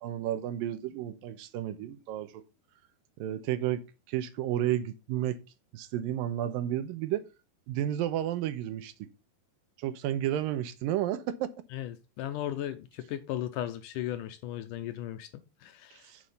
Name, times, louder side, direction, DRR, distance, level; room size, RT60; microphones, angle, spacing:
voice 1, 0.0-2.4 3.2-5.4 5.7-7.2 7.7-9.1 9.8-11.5 16.0-16.2, right 12 dB, 80° right, 2.5 m, -32 dB
voice 2, 11.7-16.1, left 12 dB, 80° left, 2.0 m, -36 dB
7.4 x 6.6 x 5.4 m
omnidirectional pair, 4.1 m